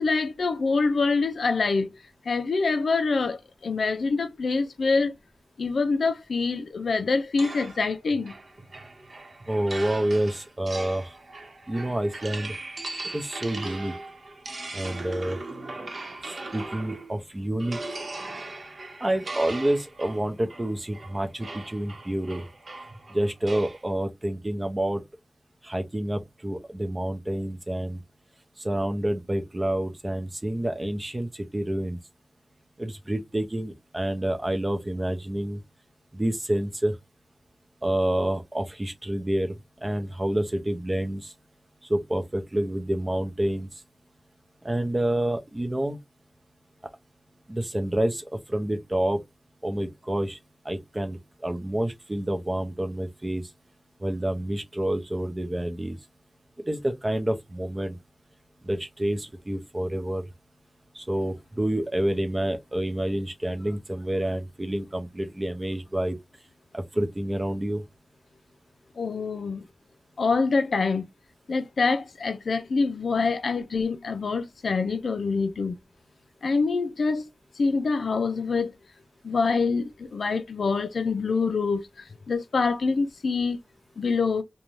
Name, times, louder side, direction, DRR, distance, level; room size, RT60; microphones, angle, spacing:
voice 1, 0.0-1.9 2.3-5.1 5.6-8.3 69.0-69.7 70.2-71.1 71.5-75.8 76.4-77.3 77.6-78.7 79.2-83.6 84.0-84.4, left 4 dB, 85° left, 0.3 m, -25 dB
sound 1, 7.4-17.2 17.6-23.8, right 2 dB, 55° right, 0.8 m, -39 dB
voice 2, 9.5-11.1 11.7-12.6 13.1-13.9 14.7-15.4 16.5-17.8 19.0-22.5 23.1-25.0 25.6-28.0 28.6-32.0 32.8-35.6 36.1-37.0 37.8-41.3 41.9-43.7 44.6-46.0 47.5-49.2 49.6-50.4 50.6-53.4 54.0-56.0 56.7-58.0 58.6-60.3 60.9-66.2 66.7-67.8, right 1 dB, 25° right, 0.6 m, -28 dB
2.5 x 2.1 x 3.0 m
wide cardioid pair, 90°, 0 cm